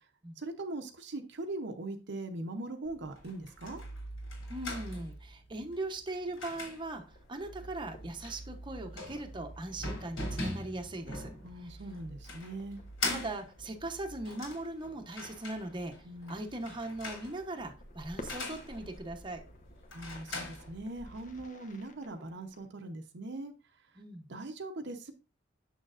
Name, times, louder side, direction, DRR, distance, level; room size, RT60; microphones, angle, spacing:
voice 1, 0.4-3.8 11.4-12.8 16.0-16.4 19.9-23.5 24.3-25.1, right 2 dB, 65° right, 6 dB, 0.7 m, -41 dB
sound 1, 2.8-21.4, left 2 dB, 85° left, 3.4 m, -42 dB
voice 2, 4.5-7.0 7.3-11.3 11.6-11.7 13.1-15.9 16.3-19.4 24.0-24.3, right 2 dB, 25° right, 4 dB, 0.9 m, -39 dB
sound 2, 6.5-22.7, left 1 dB, 40° left, 0.9 m, -55 dB
7.0 x 6.5 x 2.4 m, 0.30 s
head